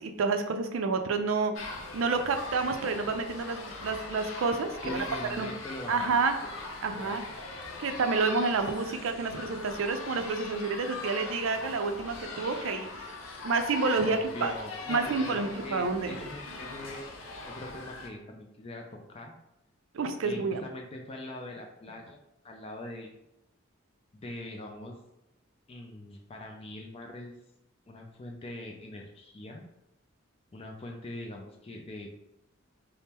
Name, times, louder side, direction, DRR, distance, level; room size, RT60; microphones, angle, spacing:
voice 1, 0.0-5.0 5.4-5.5 5.9-6.3 6.8-7.2 7.8-13.1 13.4-14.5 14.9-16.2 19.9-20.6, right 4 dB, 75° right, 7 dB, 0.4 m, -29 dB
sound 1, 1.5-18.1, left 3 dB, 75° left, 0.6 m, -41 dB
voice 2, 4.8-6.5 6.9-7.2 14.0-17.0 17.5-19.3 20.2-22.2 22.4-23.1 24.1-25.0 25.7-27.3 27.9-29.7 30.5-32.1, left 1 dB, 30° left, 1 dB, 0.4 m, -42 dB
3.5 x 2.0 x 4.2 m, 0.86 s
head